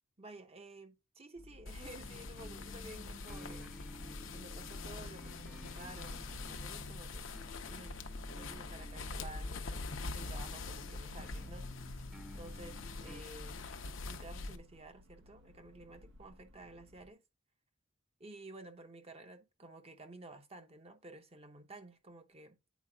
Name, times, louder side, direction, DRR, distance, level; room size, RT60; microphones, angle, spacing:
voice 1, 0.2-3.7 4.3-7.3 7.7-8.0 8.3-11.8 12.3-13.7 14.0-17.2 18.2-22.6, right 2 dB, 30° right, 0.9 m, -53 dB
sound 1, 1.7-14.6, left 3 dB, 70° left, 0.7 m, -44 dB
sound 2, 2.0-13.2, equal, ahead, 0.6 m, -53 dB
sound 3, 5.1-17.1, left 1 dB, 65° right, 0.9 m, -55 dB
9.2 x 4.6 x 2.3 m
head